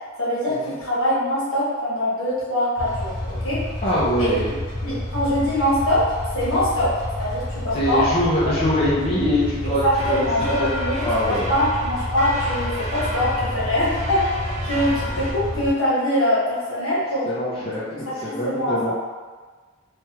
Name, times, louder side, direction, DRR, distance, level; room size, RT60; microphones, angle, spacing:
voice 1, 0.2-3.6 4.2-4.3 4.8-8.1 9.6-14.3 14.6-17.3 17.5-17.7 17.9-18.9, left 1 dB, 75° left, -8 dB, 1.3 m, -23 dB
sound 1, 2.8-15.7, left 1 dB, 15° right, 0.9 m, -30 dB
voice 2, 3.8-4.5 7.7-10.2 10.6-10.7 11.0-11.5 17.3-18.9, equal, 25° left, -9 dB, 0.5 m, -23 dB
sound 2, 10.0-15.3, equal, 30° right, 0.4 m, -31 dB
3.2 x 2.2 x 2.9 m, 1.4 s
head